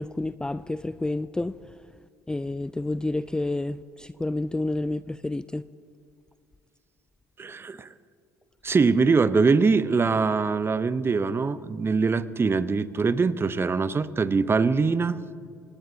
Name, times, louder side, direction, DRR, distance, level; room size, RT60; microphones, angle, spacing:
voice 1, 0.0-1.6 2.3-5.6, left 2 dB, 10° left, 0.4 m, -29 dB
voice 2, 7.4-7.9 8.6-15.2, right 4 dB, 25° right, 0.8 m, -23 dB
26.0 x 18.0 x 2.8 m
hypercardioid pair, 65°, 9 cm